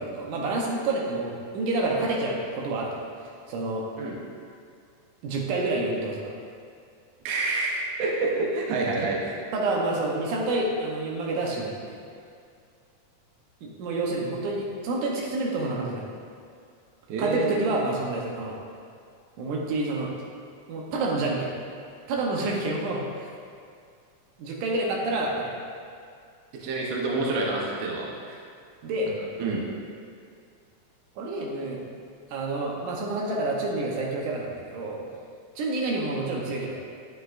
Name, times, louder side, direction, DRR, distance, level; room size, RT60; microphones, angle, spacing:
voice 1, 0.0-3.0 3.5-3.8 5.2-6.3 9.5-12.0 13.6-16.0 17.2-18.6 19.4-20.1 20.7-21.5 22.1-23.3 24.4-25.5 28.8-29.1 31.2-31.9 32.3-35.1 35.6-36.8, right 2 dB, 85° right, -2 dB, 2.4 m, -28 dB
voice 2, 7.3-9.4 17.1-17.6 26.6-28.4 29.4-29.6, right 3 dB, 65° right, -3 dB, 1.9 m, -28 dB
9.3 x 6.6 x 2.5 m, 2.3 s
omnidirectional pair, 3.5 m